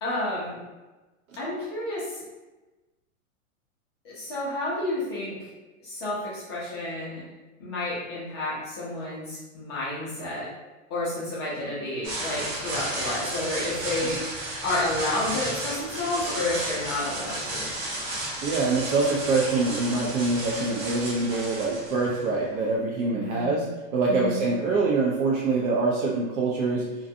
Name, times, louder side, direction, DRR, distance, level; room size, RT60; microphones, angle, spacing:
voice 1, 0.0-0.6 1.4-2.2 4.0-5.4 5.8-7.2 7.6-10.5 10.9-14.3 14.6-17.7 22.0-22.3 23.1-23.7 24.1-24.5, left 2 dB, 20° left, -8 dB, 0.3 m, -30 dB
sound 1, 12.0-22.7, right 1 dB, 45° right, 1.0 m, -33 dB
voice 2, 18.4-23.7 23.9-26.9, right 3 dB, 75° right, -3 dB, 0.6 m, -25 dB
2.5 x 2.2 x 2.5 m, 1.1 s
hypercardioid pair, 145°, 42 cm